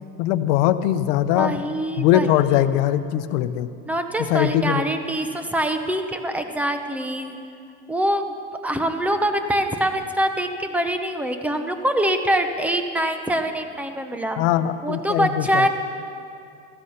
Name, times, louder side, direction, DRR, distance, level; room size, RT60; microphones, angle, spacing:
voice 1, 0.2-1.5 2.0-3.7 4.2-4.8 14.4-15.7, left 12 dB, 70° left, 12 dB, 0.8 m, -21 dB
voice 2, 1.4-2.3 3.9-7.4 7.9-8.3 8.6-14.4 14.8-15.7, right 1 dB, 5° right, 7 dB, 0.7 m, -24 dB
15.0 x 13.0 x 5.7 m, 2.5 s
supercardioid pair, 150°, 31 cm